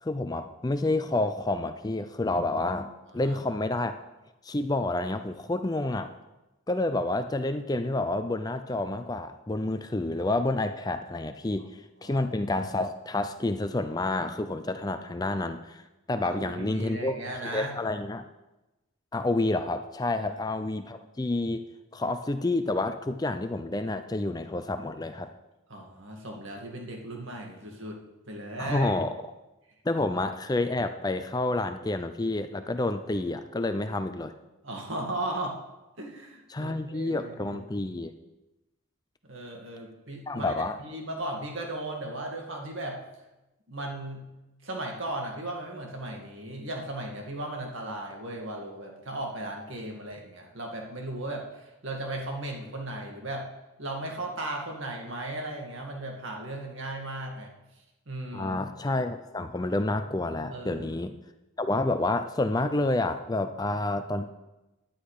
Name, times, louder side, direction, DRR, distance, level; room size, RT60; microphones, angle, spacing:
voice 1, 0.0-3.9 4.4-6.1 6.7-15.8 16.1-17.1 17.4-18.2 19.1-21.6 21.9-25.3 28.6-29.1 29.8-34.3 36.5-38.1 40.3-40.8 58.3-61.1 61.6-64.2, left 2 dB, 20° left, 9 dB, 0.4 m, -29 dB
voice 2, 16.2-17.7 20.2-20.3 25.7-28.0 28.3-28.9 34.6-35.6 36.0-37.6 39.3-40.5 40.8-43.0 43.7-44.2 44.6-53.5 53.8-57.5 58.1-58.6 60.5-60.9, right 1 dB, 65° right, 1 dB, 2.1 m, -36 dB
10.0 x 9.8 x 5.0 m, 1.0 s
head